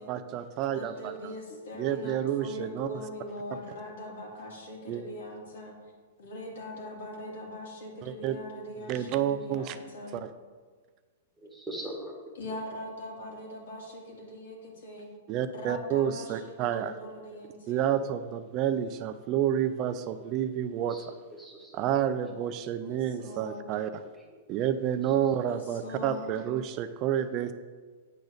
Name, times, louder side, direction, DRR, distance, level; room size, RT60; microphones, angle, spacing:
voice 1, 0.1-1.3 1.8-2.9 4.9-5.0 8.0-8.4 8.9-9.8 10.1-10.3 15.3-16.9 17.7-21.1 21.7-24.0 24.5-27.5, right 10 dB, 30° right, 11 dB, 0.3 m, -29 dB
voice 2, 0.7-5.8 6.2-10.2 12.3-15.1 15.5-17.9 22.8-23.7 25.5-26.3, left 1 dB, 75° left, -1 dB, 2.4 m, -41 dB
voice 3, 11.4-12.1 20.8-21.8 23.8-23.9 24.5-24.6, right 1 dB, 5° right, 0 dB, 1.1 m, -41 dB
9.0 x 3.9 x 6.4 m, 1.5 s
hypercardioid pair, 155°, 0 cm